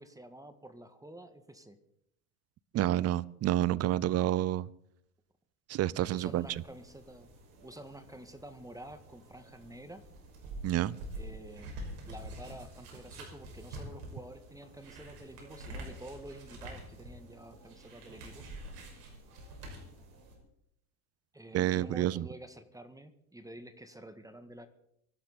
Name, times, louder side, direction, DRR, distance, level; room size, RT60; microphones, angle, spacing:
voice 1, 0.0-1.8 6.1-7.3 7.6-10.0 11.2-11.7 12.1-18.4 21.3-24.7, right 1 dB, 5° right, 1.6 m, -49 dB
voice 2, 2.7-4.7 5.7-6.5 10.6-11.0 21.5-22.3, right 13 dB, 35° right, 0.6 m, -29 dB
sound 1, 6.2-20.3, right 1 dB, 80° right, 5.9 m, -47 dB
24.5 x 12.0 x 4.3 m
hypercardioid pair, 90°, 46 cm